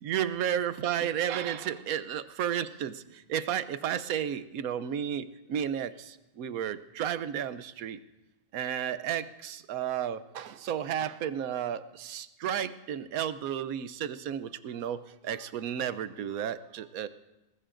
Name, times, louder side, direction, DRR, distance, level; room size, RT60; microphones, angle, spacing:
voice 1, 0.0-8.0 8.5-17.1, right 9 dB, 85° right, 12 dB, 1.2 m, -33 dB
21.0 x 20.0 x 2.6 m, 1.0 s
omnidirectional pair, 1.5 m